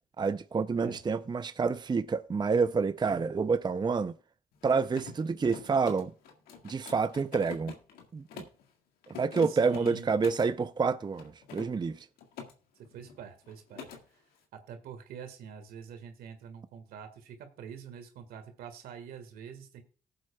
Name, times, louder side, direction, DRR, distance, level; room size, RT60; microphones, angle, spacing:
voice 1, 0.2-4.1 4.6-6.1 6.6-7.7 8.1-8.4 9.1-12.1, right 5 dB, 30° right, 0.5 m, -28 dB
Mechanisms, 4.5-8.6 9.0-10.5 11.1-12.5 12.8-13.2 13.4-14.0, left 7 dB, 80° left, 1.8 m, -46 dB
voice 2, 9.5-10.1 12.9-13.9 14.5-19.8, right 7 dB, 80° right, 1.8 m, -46 dB
18.5 x 7.7 x 2.3 m
supercardioid pair, 55°, 15 cm